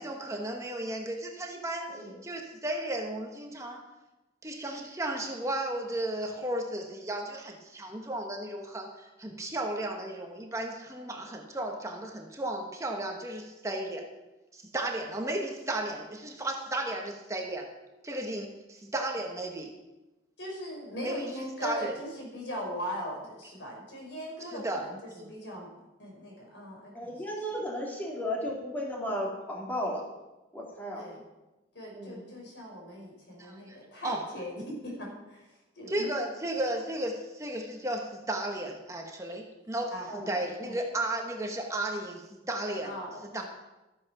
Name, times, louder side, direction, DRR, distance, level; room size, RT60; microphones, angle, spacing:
voice 1, 0.0-3.8 4.4-14.1 14.5-17.7 18.0-19.7 21.0-21.3 21.6-21.9 24.5-24.8 25.2-25.3 33.4-34.2 35.9-39.9 40.3-42.9 43.3-43.4, right 1 dB, 15° right, 2 dB, 1.3 m, -34 dB
voice 2, 20.4-27.1 30.9-31.2 31.7-36.1 39.9-40.8 42.8-43.5, equal, 90° left, -1 dB, 5.1 m, -40 dB
voice 3, 26.9-30.0 30.5-31.1 31.9-32.3 40.1-40.3, equal, 10° left, -3 dB, 2.8 m, -34 dB
13.5 x 8.5 x 6.1 m, 1.0 s
head